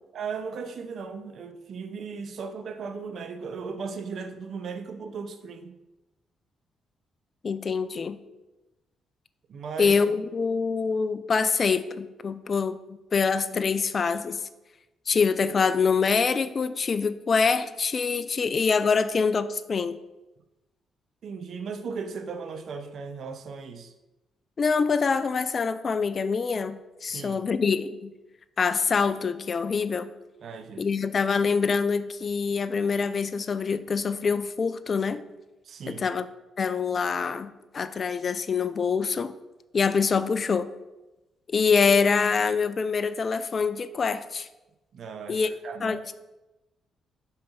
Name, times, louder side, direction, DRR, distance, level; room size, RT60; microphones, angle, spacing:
voice 1, 0.1-5.8 9.5-10.0 21.2-23.9 27.0-27.4 30.4-31.0 35.6-36.1 44.9-46.2, right 5 dB, 65° right, 8 dB, 0.7 m, -37 dB
voice 2, 7.4-8.2 9.8-14.4 15.1-20.0 24.6-28.1 28.6-30.1 30.8-35.2 35.9-36.3 36.6-39.3 39.7-40.7 41.5-44.5 45.3-45.5 45.8-46.2, left 5 dB, 50° left, 13 dB, 0.5 m, -25 dB
5.3 x 4.5 x 5.3 m, 1.0 s
supercardioid pair, 60°, 0 cm